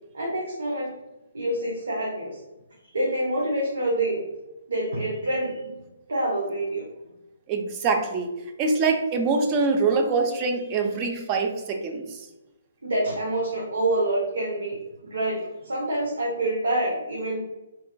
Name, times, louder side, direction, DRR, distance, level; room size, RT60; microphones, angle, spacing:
voice 1, 0.1-0.9 1.3-2.4 2.9-4.2 4.7-5.8 6.1-6.8 12.8-14.8 15.0-17.4, right 1 dB, 85° right, -3 dB, 0.7 m, -26 dB
voice 2, 7.5-8.3 8.6-12.3, right 4 dB, 25° right, 4 dB, 0.4 m, -24 dB
3.1 x 2.3 x 2.2 m, 0.98 s
hypercardioid pair, 150°, 0 cm